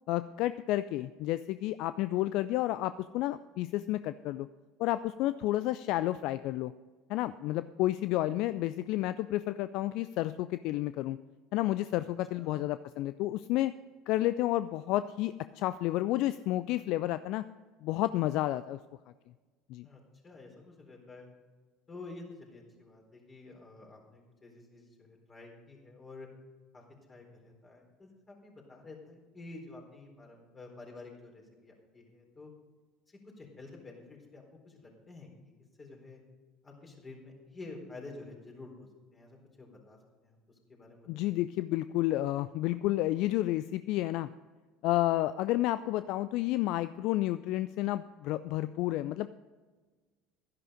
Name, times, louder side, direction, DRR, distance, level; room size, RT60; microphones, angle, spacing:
voice 1, 0.1-4.5 4.8-6.7 7.1-11.2 11.5-13.7 14.1-17.4 17.8-18.8 19.7-19.9 41.1-44.3 44.8-49.3, left 15 dB, 60° left, 13 dB, 0.3 m, -31 dB
voice 2, 19.8-21.3 21.9-26.3 26.7-26.8 27.1-32.5 33.2-35.5 35.8-36.2 36.6-40.4 40.8-41.3, left 3 dB, 25° left, 0 dB, 4.2 m, -50 dB
12.5 x 11.0 x 5.1 m, 1.3 s
figure-of-eight pair, 70°, 0 cm